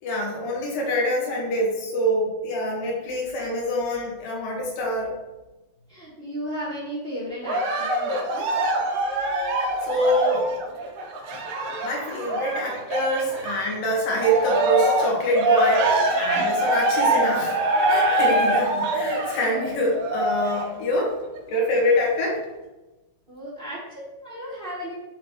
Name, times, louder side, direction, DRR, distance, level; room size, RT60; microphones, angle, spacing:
voice 1, 0.0-5.1 9.8-10.5 11.8-17.6 17.9-21.2 21.5-22.4, equal, 65° left, -2 dB, 3.4 m, -25 dB
voice 2, 5.9-8.6 10.3-10.4 16.3-16.4 23.3-24.9, equal, 25° right, -11 dB, 1.3 m, -35 dB
Cheering, 7.5-13.8 14.2-20.7 21.4-21.5, right 1 dB, 85° right, 3.2 m, -24 dB
11.5 x 4.1 x 3.2 m, 1.1 s
omnidirectional pair, 4.4 m